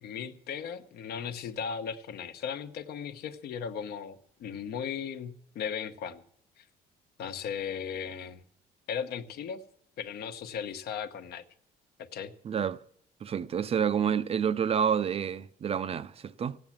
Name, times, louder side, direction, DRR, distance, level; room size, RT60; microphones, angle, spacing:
voice 1, 0.0-6.2 6.6-6.7 7.2-8.4 8.9-9.6 10.0-11.4 12.0-12.3, left 7 dB, 70° left, 1.1 m, -37 dB
voice 2, 12.4-12.8 13.2-16.6, right 7 dB, 35° right, 0.5 m, -29 dB
15.5 x 8.8 x 7.3 m
cardioid pair, 110°, 17 cm